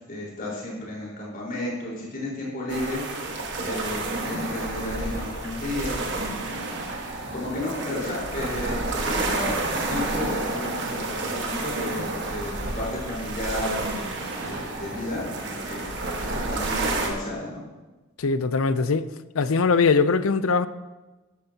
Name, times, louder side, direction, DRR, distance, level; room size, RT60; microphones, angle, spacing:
voice 1, 0.0-3.2 3.6-6.7 7.3-17.6, left 1 dB, 45° left, 4.4 m, -33 dB
sound 1, 2.7-17.1, right 2 dB, 55° right, 1.6 m, -30 dB
voice 2, 18.2-19.1 19.3-20.7, left 4 dB, 90° left, 0.6 m, -21 dB
13.5 x 12.0 x 2.9 m
head